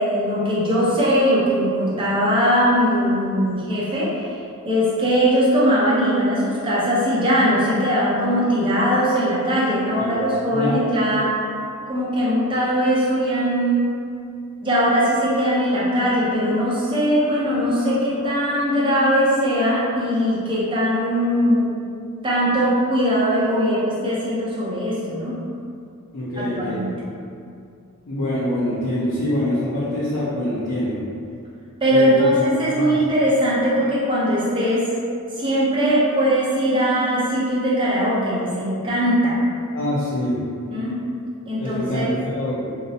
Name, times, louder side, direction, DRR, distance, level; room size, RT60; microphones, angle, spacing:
voice 1, 0.0-4.3 4.6-11.3 11.9-13.9 14.6-21.7 22.2-25.4 26.4-26.9 31.8-34.9 35.4-39.4 40.7-41.0 41.5-42.1, equal, 20° right, -7 dB, 0.5 m, -20 dB
voice 2, 26.1-26.8 28.1-31.0 31.9-32.3 32.7-32.9 39.7-40.4 41.6-42.7, left 1 dB, 90° left, -11 dB, 0.5 m, -25 dB
2.6 x 2.0 x 2.6 m, 2.4 s
head